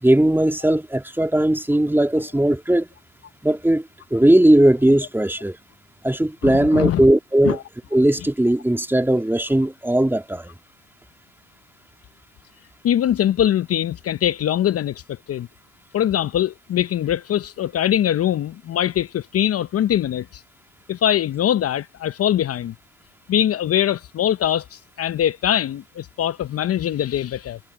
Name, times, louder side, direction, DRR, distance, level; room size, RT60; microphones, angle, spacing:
voice 1, 0.0-2.9 3.4-5.6 6.0-7.6 7.9-10.5, right 1 dB, 5° right, 2.5 m, -18 dB
voice 2, 6.4-7.0 7.4-7.6 12.8-15.5 15.9-20.4 20.9-22.7 23.3-27.6, left 11 dB, 50° left, 0.9 m, -22 dB
hypercardioid pair, 55°, 30 cm